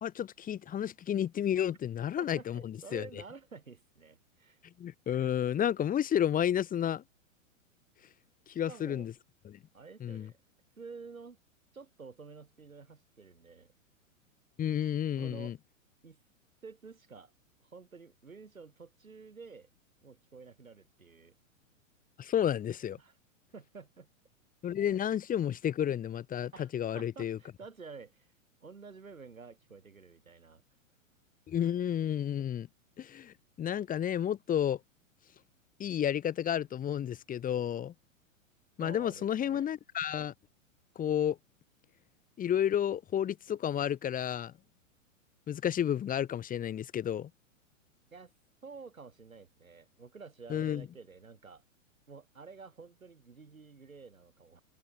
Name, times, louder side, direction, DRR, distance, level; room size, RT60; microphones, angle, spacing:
voice 1, 0.0-3.1 4.8-7.0 8.5-9.1 9.4-9.6 10.0-10.3 14.6-15.6 22.2-23.0 24.6-27.4 31.5-32.7 33.0-34.8 35.8-37.9 38.8-40.3 40.9-41.4 42.4-44.5 45.5-47.3 50.5-50.8, left 10 dB, 20° left, 1.8 m, -31 dB
voice 2, 2.2-4.6 8.7-9.1 9.7-10.4 10.8-11.4 11.7-13.7 15.2-15.5 16.0-16.2 16.6-17.3 17.6-19.7 20.0-21.3 23.0-23.2 23.5-24.1 26.5-28.3 28.6-30.6 38.8-39.7 48.1-48.3 48.6-51.6 52.1-54.6, right 4 dB, 85° right, 7.2 m, -50 dB
hypercardioid pair, 110°, 40 cm